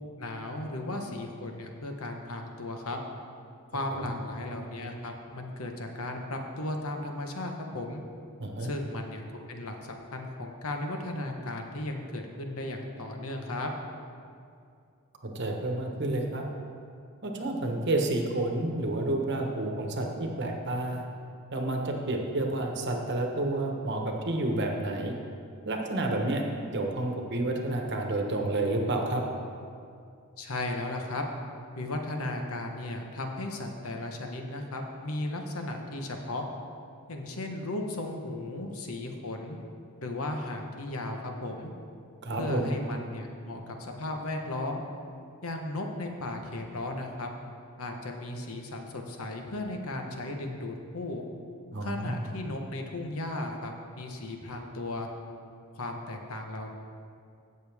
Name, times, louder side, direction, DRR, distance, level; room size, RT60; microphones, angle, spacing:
voice 1, 0.2-3.0 3.7-8.0 8.6-13.7 30.4-31.2 31.8-36.5 37.1-39.6 40.0-41.7 42.3-44.8 45.4-47.3 47.8-51.2 51.8-55.1 55.7-56.7, left 2 dB, 75° left, 3 dB, 1.1 m, -35 dB
voice 2, 8.4-8.7 15.2-16.4 17.2-21.0 21.5-25.1 25.6-26.4 26.7-29.2 42.2-42.8 51.7-52.3, right 2 dB, 50° right, 2 dB, 1.1 m, -30 dB
16.5 x 6.8 x 3.5 m, 2.4 s
head